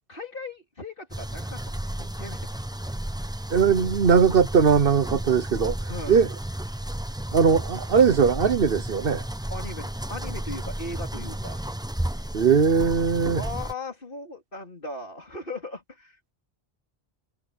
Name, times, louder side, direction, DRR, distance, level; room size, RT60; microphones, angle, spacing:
voice 1, 0.1-2.4 5.9-6.2 9.5-11.6 13.4-16.3, left 2 dB, 55° left, 4.0 m, -38 dB
sound 1, 1.1-13.7, right 1 dB, 5° right, 0.7 m, -33 dB
voice 2, 3.5-5.8 6.1-6.3 7.3-9.2 12.3-13.4, right 6 dB, 60° right, 1.1 m, -20 dB
omnidirectional pair, 1.1 m